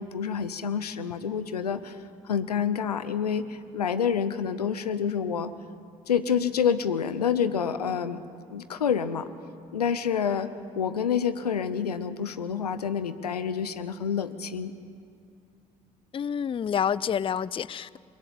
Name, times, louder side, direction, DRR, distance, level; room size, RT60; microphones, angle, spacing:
voice 1, 0.0-2.0 2.2-5.5 6.1-8.2 8.5-9.3 9.7-10.5 10.8-14.7, left 7 dB, 90° left, 13 dB, 0.6 m, -28 dB
voice 2, 16.1-18.0, left 8 dB, 25° left, 20 dB, 0.4 m, -28 dB
22.0 x 14.0 x 9.2 m, 2.4 s
figure-of-eight pair, 50°, 19 cm